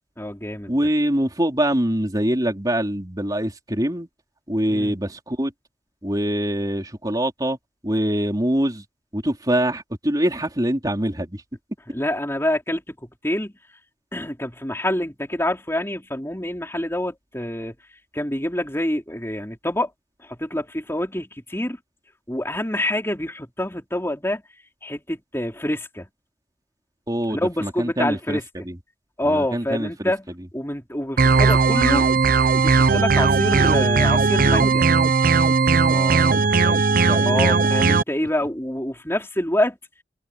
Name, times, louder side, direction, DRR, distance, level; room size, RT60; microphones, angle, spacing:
voice 1, 0.2-0.7 4.7-4.9 11.9-13.5 14.1-17.7 18.1-19.9 20.4-21.8 22.3-24.4 24.8-26.1 27.3-28.4 29.2-30.3 30.5-32.1 32.5-34.9 37.2-39.8, left 1 dB, 15° left, 4.4 m, -26 dB
voice 2, 0.7-4.1 4.5-5.5 6.0-7.6 7.8-8.8 9.1-11.4 27.1-28.8 29.2-30.1 35.9-37.8, right 1 dB, 20° right, 3.8 m, -24 dB
sound 1, 31.2-38.0, right 4 dB, 50° right, 0.7 m, -17 dB
head